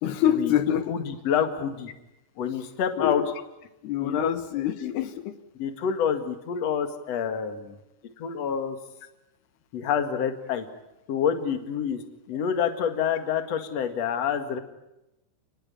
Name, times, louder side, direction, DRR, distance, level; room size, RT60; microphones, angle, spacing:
voice 1, 0.0-0.9 3.0-3.3 3.8-5.4, left 10 dB, 85° left, 10 dB, 3.7 m, -26 dB
voice 2, 0.9-1.9 2.4-3.2 4.0-4.3 4.8-5.0 5.6-7.8 8.2-8.8 9.7-10.7 11.1-12.0 12.3-14.6, left 8 dB, 45° left, 7 dB, 2.7 m, -27 dB
29.5 x 20.5 x 8.7 m, 0.92 s
omnidirectional pair, 4.5 m